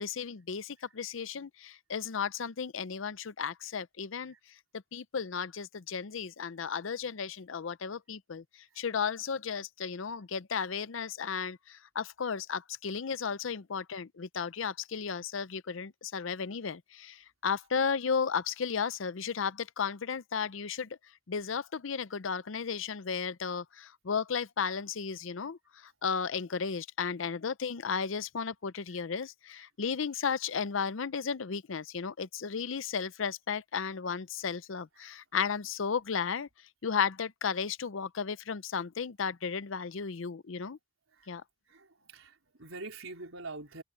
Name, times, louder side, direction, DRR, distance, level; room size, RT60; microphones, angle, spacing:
voice 1, 0.0-4.3 4.9-8.4 8.8-21.0 21.3-36.5 36.8-40.8 41.3-41.4, left 6 dB, 70° left, 0.6 m, -34 dB
voice 2, 41.7-43.8, right 3 dB, 85° right, 4.4 m, -44 dB
head